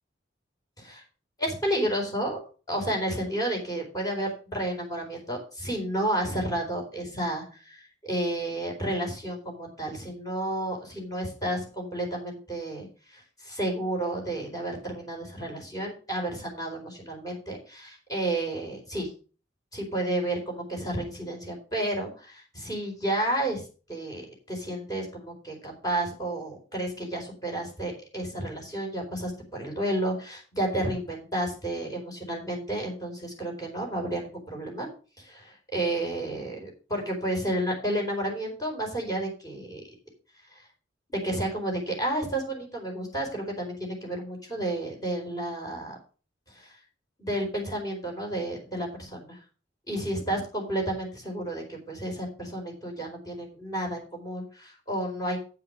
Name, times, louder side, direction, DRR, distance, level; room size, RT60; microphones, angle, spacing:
voice 1, 1.4-2.4 2.7-19.1 19.7-23.6 23.9-34.9 35.2-39.8 40.5-40.6 41.1-46.0 46.5-46.7 47.2-49.4 49.9-55.4, right 1 dB, 20° left, 0 dB, 4.3 m, -31 dB
8.5 x 7.7 x 5.2 m, 0.36 s
head